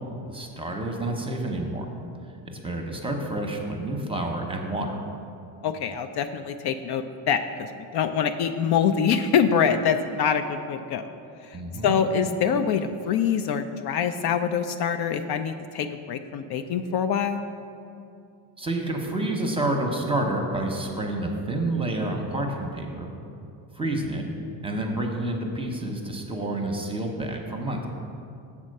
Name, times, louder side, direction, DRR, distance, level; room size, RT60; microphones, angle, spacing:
voice 1, 0.2-1.8 2.4-4.9 11.5-12.0 18.6-23.1 23.8-24.3 24.6-27.8, right 1 dB, 10° right, 2 dB, 0.8 m, -29 dB
voice 2, 5.6-11.1 11.4-17.4, left 7 dB, 60° left, 8 dB, 0.5 m, -25 dB
7.3 x 4.3 x 6.5 m, 2.5 s
cardioid pair, 110°, 45 cm